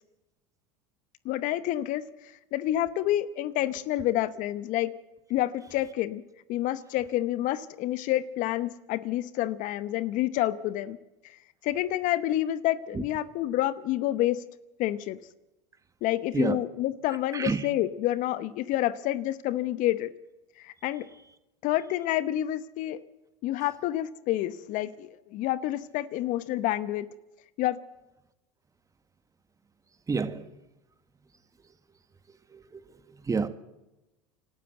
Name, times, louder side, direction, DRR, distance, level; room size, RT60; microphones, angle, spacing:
voice 1, 1.2-2.0 2.5-4.9 5.3-6.2 6.5-11.0 11.6-14.4 14.8-15.2 16.0-20.1 20.6-21.1 21.6-23.0 23.4-27.1 27.6-27.8, left 14 dB, 55° left, 0.9 m, -28 dB
voice 2, 17.3-17.7 30.1-30.4 32.5-32.8 33.1-33.5, right 5 dB, 20° right, 1.6 m, -29 dB
27.0 x 12.5 x 7.9 m
hypercardioid pair, 90°, 16 cm